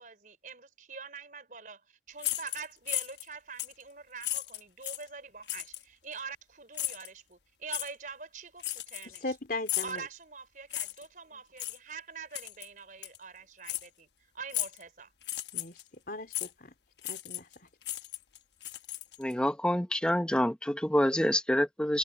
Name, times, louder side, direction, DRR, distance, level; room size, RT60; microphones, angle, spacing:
voice 1, 0.0-9.3 9.8-14.1 14.3-15.1, right 5 dB, 50° right, 5.2 m, -45 dB
sound 1, 2.2-3.3 3.6-3.8 4.2-5.1 5.5-5.8 6.7-7.1 7.7-7.9 8.6-9.3 9.7-10.0 10.7-11.1 11.6-11.8 12.3-12.7 13.0-13.2 13.6-13.9 14.5-14.8 15.2-15.8 16.3-16.5 17.0-17.5 17.8-19.3, left 14 dB, 75° left, 1.1 m, -35 dB
voice 2, 9.1-10.0 15.5-15.8 16.1-16.7 17.1-17.7, left 2 dB, 55° left, 3.6 m, -38 dB
voice 3, 19.2-22.0, equal, 5° left, 1.0 m, -27 dB
head